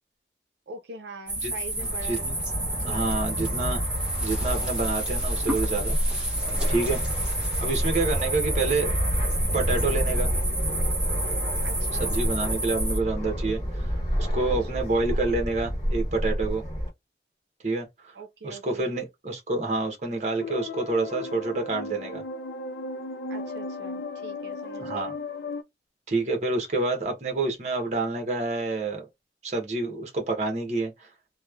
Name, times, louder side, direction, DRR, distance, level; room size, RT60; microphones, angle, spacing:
voice 1, 0.7-3.3 6.9-7.3 11.6-12.2 14.5-14.9 18.1-19.0 23.3-25.1, right 4 dB, 75° right, 0.5 m, -43 dB
sound 1, 1.3-13.0, right 1 dB, 5° right, 0.7 m, -30 dB
Fixed-wing aircraft airplane, 1.8-16.9, equal, 20° left, 1.2 m, -29 dB
voice 2, 1.8-2.3 2.8-3.8 4.2-6.0 6.7-7.0 7.6-9.0 9.5-10.3 12.0-16.6 17.6-18.1 18.4-22.2 24.8-25.1 26.1-29.0 29.4-31.1, right 3 dB, 40° right, 0.8 m, -28 dB
Had sadness, 20.4-25.6, left 3 dB, 65° left, 0.3 m, -35 dB
3.0 x 2.1 x 2.3 m
head